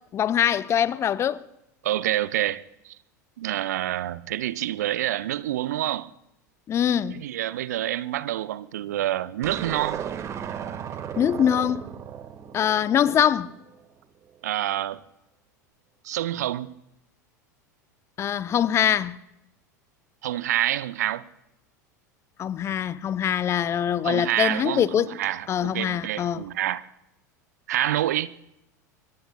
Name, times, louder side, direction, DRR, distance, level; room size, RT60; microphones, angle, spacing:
voice 1, 0.1-1.4 6.7-7.2 11.2-11.8 12.5-13.5 18.2-19.2 22.4-25.1 25.5-26.4, left 9 dB, 30° left, 0.6 m, -23 dB
voice 2, 1.8-3.0 3.4-6.1 7.1-10.1 14.4-15.0 16.0-16.8 20.2-21.3 24.0-26.8 27.7-28.3, right 13 dB, 65° right, 0.6 m, -27 dB
sound 1, 9.4-13.8, right 8 dB, 30° right, 1.6 m, -35 dB
28.0 x 23.0 x 2.3 m
figure-of-eight pair, 80°, 10 cm